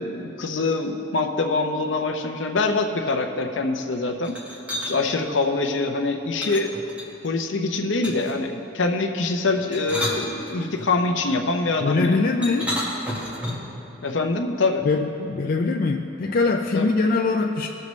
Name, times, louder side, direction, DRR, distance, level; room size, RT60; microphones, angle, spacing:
voice 1, 0.0-4.4 4.8-6.7 7.2-12.2 14.0-14.8 16.7-16.9, left 3 dB, 65° left, 4 dB, 0.7 m, -24 dB
sound 1, 4.2-4.9 6.4-7.3 8.0-8.4 9.6-10.9 12.4-13.7, equal, 5° right, 1.4 m, -31 dB
voice 2, 11.8-12.8 14.8-17.7, left 3 dB, 45° left, 2 dB, 0.4 m, -22 dB
18.0 x 6.7 x 3.2 m, 2.9 s
head